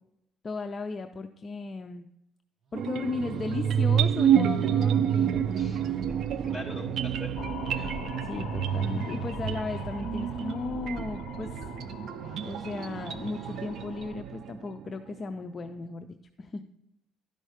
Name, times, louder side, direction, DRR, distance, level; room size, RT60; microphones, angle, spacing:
voice 1, 0.4-2.1 2.7-5.6 8.2-11.6 12.4-16.6, left 4 dB, 30° left, 6 dB, 0.5 m, -36 dB
sound 1, 2.7-14.6, right 2 dB, 45° right, 1.1 m, -44 dB
sound 2, 2.7-14.9, right 9 dB, 60° right, 0.4 m, -29 dB
voice 2, 5.5-7.4 7.7-8.0, left 1 dB, 5° left, -3 dB, 2.3 m, -43 dB
sound 3, 7.4-14.2, left 12 dB, 85° left, 0.4 m, -44 dB
12.0 x 5.4 x 4.9 m, 0.84 s
cardioid pair, 135°, 0 cm